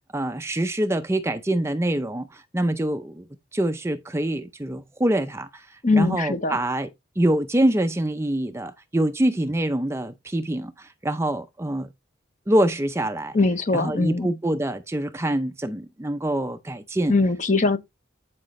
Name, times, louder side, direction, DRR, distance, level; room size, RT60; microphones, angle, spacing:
voice 1, 0.1-3.2 3.5-6.9 7.2-11.9 12.5-13.4 13.7-17.1, right 1 dB, 15° right, 0.5 m, -25 dB
voice 2, 5.8-6.6 13.3-14.3 17.1-17.8, left 3 dB, 40° left, 0.8 m, -21 dB
9.7 x 5.0 x 3.1 m
head